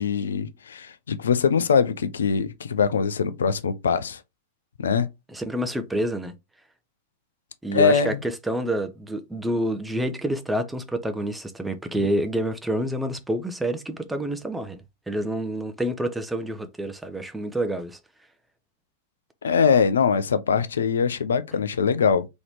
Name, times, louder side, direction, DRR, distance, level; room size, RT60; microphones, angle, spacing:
voice 1, 0.0-4.2 4.8-5.1 7.7-8.2 19.4-22.3, left 6 dB, 70° left, 0.5 m, -22 dB
voice 2, 5.3-6.3 7.6-18.0, right 1 dB, 5° right, 0.6 m, -28 dB
3.9 x 3.0 x 3.0 m
figure-of-eight pair, 95°, 0 cm